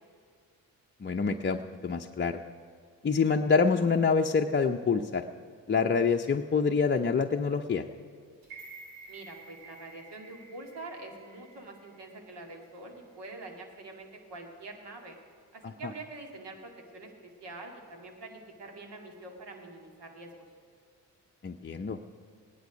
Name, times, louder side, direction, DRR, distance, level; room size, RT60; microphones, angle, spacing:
voice 1, 1.0-2.4 3.0-5.2 5.7-7.8 15.6-15.7 21.4-22.0, left 5 dB, 25° left, 2 dB, 0.6 m, -26 dB
sound 1, 8.4-12.6 12.9-13.0, right 3 dB, 90° right, 2.0 m, -51 dB
voice 2, 9.1-15.2 15.5-20.3, right 2 dB, 65° right, 2 dB, 2.3 m, -45 dB
17.5 x 10.5 x 5.1 m, 2.1 s
supercardioid pair, 45°, 44 cm